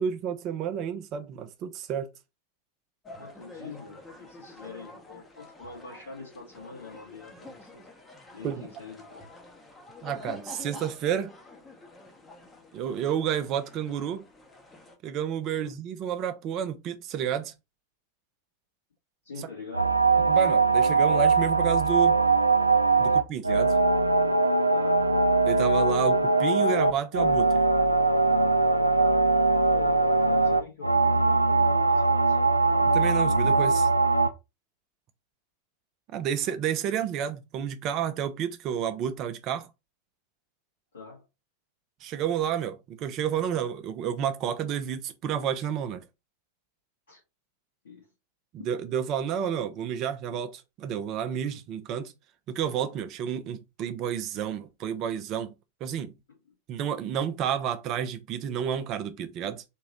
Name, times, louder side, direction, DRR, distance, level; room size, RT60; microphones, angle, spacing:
voice 1, 0.0-2.1 8.4-8.7 10.0-11.3 12.7-14.3 15.0-17.5 20.3-22.2 23.0-23.8 25.4-27.6 32.9-33.9 36.1-39.7 42.0-46.0 48.5-50.5 50.8-52.1 52.5-55.5 55.8-56.1 56.7-59.6, right 8 dB, 35° right, 0.7 m, -30 dB
sound 1, 3.0-15.0, left 2 dB, 15° left, 1.0 m, -48 dB
voice 2, 3.2-7.9 8.3-9.2 15.5-15.7 19.2-19.9 23.1-23.2 24.7-25.0 29.0-29.3 29.7-32.5 40.9-41.3 47.1-47.2 47.8-48.1, left 3 dB, 70° left, 1.9 m, -44 dB
sound 2, 19.7-34.3, right 3 dB, 85° right, 0.4 m, -21 dB
3.7 x 3.0 x 4.1 m
figure-of-eight pair, 90°, 0 cm